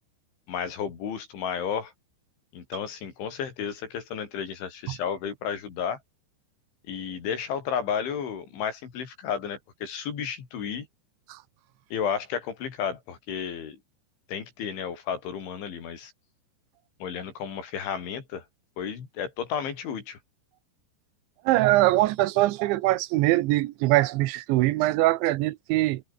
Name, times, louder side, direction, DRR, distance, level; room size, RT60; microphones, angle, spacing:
voice 1, 0.5-1.9 2.5-6.0 6.9-10.9 11.9-13.8 14.3-16.1 17.0-18.4 18.8-20.2, left 7 dB, 80° left, 6.6 m, -32 dB
voice 2, 21.5-26.0, right 17 dB, 90° right, 3.2 m, -22 dB
omnidirectional pair, 5.3 m